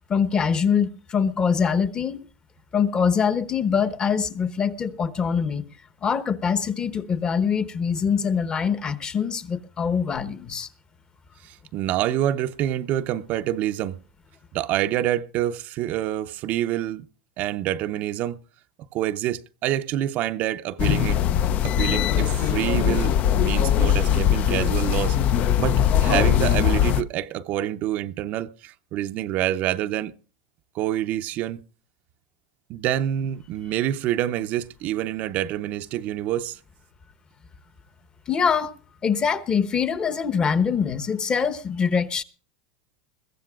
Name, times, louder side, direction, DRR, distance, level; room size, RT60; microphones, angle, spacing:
voice 1, 0.1-2.2 2.7-5.7 6.0-10.7 38.3-38.7 39.0-42.2, left 6 dB, 20° left, 1.0 m, -24 dB
voice 2, 11.4-14.0 14.5-17.0 17.4-18.4 18.9-21.2 21.6-25.2 25.6-30.1 30.7-31.6 32.7-36.6, right 12 dB, 45° right, 0.7 m, -27 dB
sound 1, 20.8-27.0, left 10 dB, 40° left, 0.6 m, -21 dB
22.0 x 15.0 x 2.4 m
supercardioid pair, 140°, 4 cm